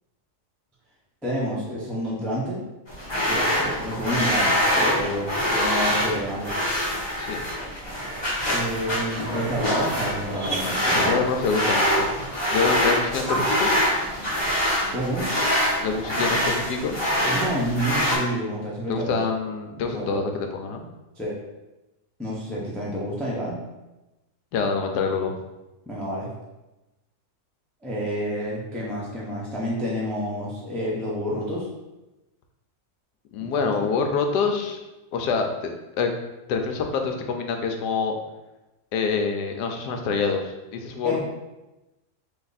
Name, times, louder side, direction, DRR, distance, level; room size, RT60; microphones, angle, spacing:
voice 1, 1.2-2.6 3.2-6.5 8.5-11.2 14.9-15.3 17.3-19.2 19.9-20.2 21.2-21.3 22.2-23.6 25.9-26.3 27.8-31.7 33.4-33.8 41.0-41.2, equal, ahead, -6 dB, 0.3 m, -29 dB
sound 1, 2.9-18.2, equal, 20° left, 1.0 m, -24 dB
voice 2, 11.1-12.1 12.5-13.7 15.8-17.0 18.9-20.9 24.5-25.3 33.3-34.8 35.1-36.1 36.5-38.2 38.9-41.2, left 5 dB, 85° left, 4 dB, 1.2 m, -26 dB
3.4 x 2.9 x 4.0 m, 1.0 s
omnidirectional pair, 1.7 m